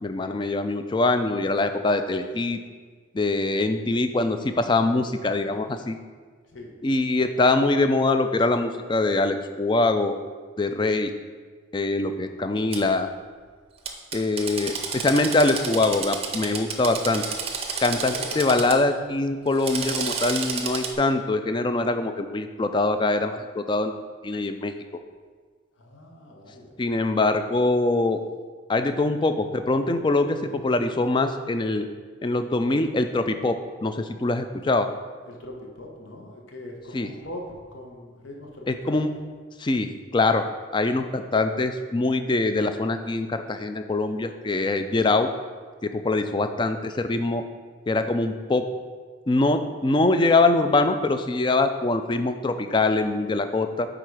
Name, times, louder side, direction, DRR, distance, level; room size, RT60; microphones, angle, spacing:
voice 1, 0.0-2.6 3.1-6.0 6.8-10.2 10.6-11.1 11.7-13.1 14.1-17.2 17.8-24.0 24.2-24.7 26.8-28.2 28.7-31.9 32.2-34.9 36.9-37.1 38.7-39.1 39.6-40.5 40.7-45.3 45.8-47.4 47.9-48.7 49.3-53.9, left 2 dB, 25° left, 8 dB, 0.3 m, -23 dB
Drill, 12.7-12.8 13.9-18.8 19.5-20.9, right 5 dB, 30° right, 0.6 m, -31 dB
voice 2, 18.1-18.7 25.8-26.7 35.2-39.1, left 1 dB, 75° left, 0 dB, 1.2 m, -41 dB
8.8 x 3.9 x 4.8 m, 1.5 s
head